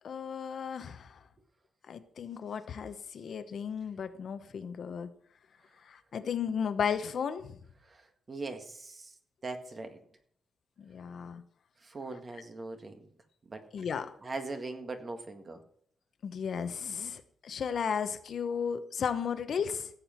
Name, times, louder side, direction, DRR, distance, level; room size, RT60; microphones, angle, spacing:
voice 1, 0.0-1.1 1.9-5.1 5.9-7.6 10.8-11.4 13.7-14.1 16.2-19.9, left 7 dB, 60° left, 10 dB, 1.0 m, -34 dB
voice 2, 7.8-9.1 9.4-10.0 11.8-13.0 13.5-13.6 14.2-15.6, right 3 dB, 35° right, 6 dB, 1.8 m, -40 dB
16.0 x 7.7 x 4.5 m, 0.64 s
wide cardioid pair, 135°, 0 cm